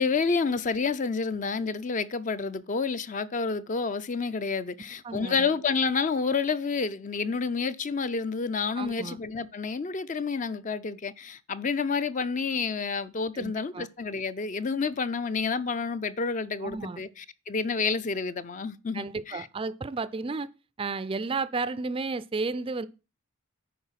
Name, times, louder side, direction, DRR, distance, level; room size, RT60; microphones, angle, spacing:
voice 1, 0.0-19.5, left 4 dB, 35° left, 0.4 m, -29 dB
voice 2, 5.0-5.5 8.8-9.2 13.3-13.9 16.6-17.0 18.9-20.5 20.8-22.9, right 3 dB, 25° right, 0.4 m, -32 dB
10.0 x 4.4 x 5.8 m
head